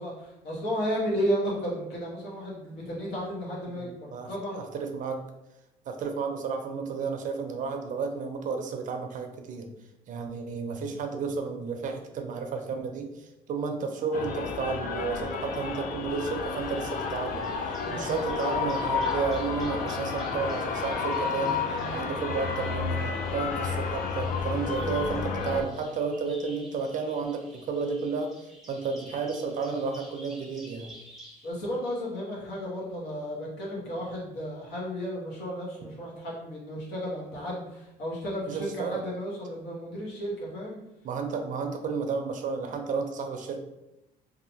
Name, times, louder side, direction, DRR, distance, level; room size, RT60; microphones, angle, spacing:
voice 1, 0.0-4.6 17.8-18.1 31.4-40.8, equal, 80° left, -5 dB, 1.2 m, -33 dB
voice 2, 3.8-4.3 4.5-5.2 5.9-9.7 10.1-17.5 17.9-21.6 21.9-23.0 23.3-30.9 38.5-39.0 41.0-43.6, right 4 dB, 50° right, 5 dB, 0.5 m, -32 dB
sound 1, 14.1-25.6, left 5 dB, 55° left, 0.4 m, -31 dB
Bird vocalization bird call bird song, 16.1-31.5, equal, ahead, 0.7 m, -51 dB
2.7 x 2.4 x 2.7 m, 0.89 s
cardioid pair, 110°, 17 cm